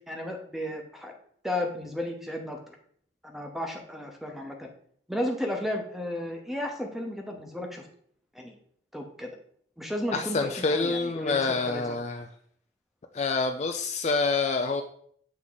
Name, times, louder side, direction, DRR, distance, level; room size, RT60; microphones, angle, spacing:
voice 1, 0.1-1.1 1.4-2.7 3.2-4.7 5.1-7.9 8.3-8.6 8.9-9.3 9.8-12.0, left 1 dB, ahead, 2 dB, 0.8 m, -33 dB
voice 2, 10.1-12.3 13.1-14.8, left 4 dB, 35° left, 5 dB, 0.3 m, -27 dB
7.6 x 3.6 x 3.9 m, 0.63 s
head